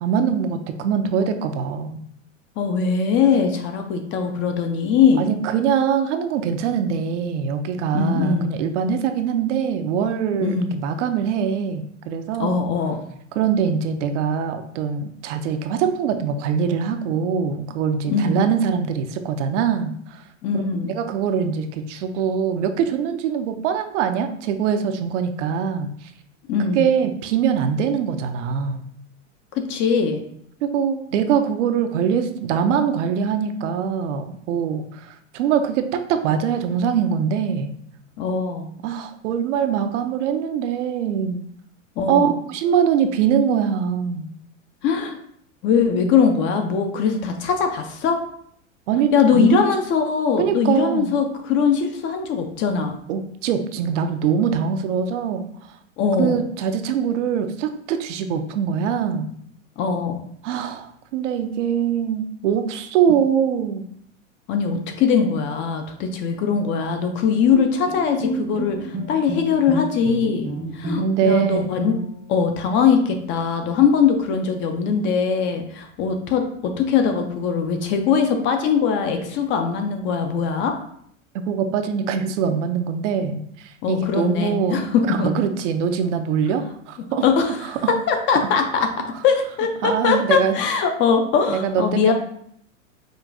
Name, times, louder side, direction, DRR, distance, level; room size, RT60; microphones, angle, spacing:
voice 1, 0.0-2.0 5.2-12.6 13.3-20.2 20.5-20.6 20.9-26.1 26.7-28.8 30.6-37.7 38.8-41.4 42.1-44.3 48.9-49.6 50.4-51.1 53.1-55.5 56.2-59.3 60.4-63.8 71.0-71.7 81.3-87.2 89.8-90.6 91.5-92.1, right 7 dB, 65° right, 7 dB, 0.5 m, -23 dB
voice 2, 2.6-5.3 7.9-8.5 10.4-10.7 12.4-13.0 18.1-18.4 20.4-20.9 26.5-26.8 29.6-30.2 38.2-38.7 42.0-42.3 44.8-45.2 45.6-48.2 49.1-53.0 56.0-56.4 59.8-60.2 64.5-71.9 72.3-80.8 83.8-85.3 87.2-92.1, left 6 dB, 30° left, 5 dB, 0.4 m, -21 dB
Bowed string instrument, 67.5-72.3, right 1 dB, 25° right, 0.6 m, -30 dB
5.0 x 2.2 x 2.5 m, 0.66 s
hypercardioid pair, 105°, 39 cm